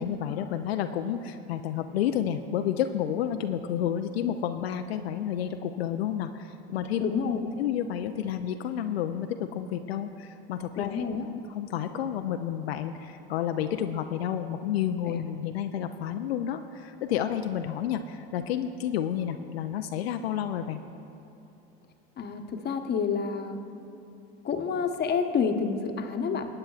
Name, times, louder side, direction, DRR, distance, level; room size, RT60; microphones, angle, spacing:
voice 1, 0.0-7.0 7.6-11.0 11.5-20.8, left 10 dB, 85° left, 7 dB, 0.5 m, -30 dB
voice 2, 7.0-7.4 10.8-11.3 15.1-15.2 22.2-23.6 24.4-26.5, left 6 dB, 35° left, 5 dB, 1.0 m, -28 dB
20.5 x 8.7 x 2.4 m, 3.0 s
hypercardioid pair, 75°, 30 cm